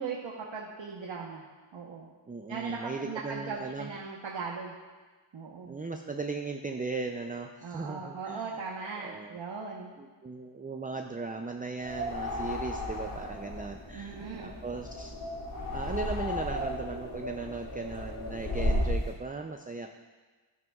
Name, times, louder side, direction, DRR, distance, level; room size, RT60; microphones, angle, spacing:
voice 1, 0.0-1.5 1.7-2.1 2.5-4.7 5.3-5.7 7.6-9.9 13.9-14.5, right 5 dB, 65° right, -3 dB, 1.2 m, -38 dB
voice 2, 2.3-3.9 5.7-8.5 9.0-9.4 10.0-15.2 15.7-19.9, right 3 dB, 20° right, 4 dB, 0.5 m, -37 dB
sound 1, 11.8-19.1, left 1 dB, 40° left, 2.4 m, -34 dB
11.0 x 10.5 x 2.4 m, 1.3 s
cardioid pair, 60°, 49 cm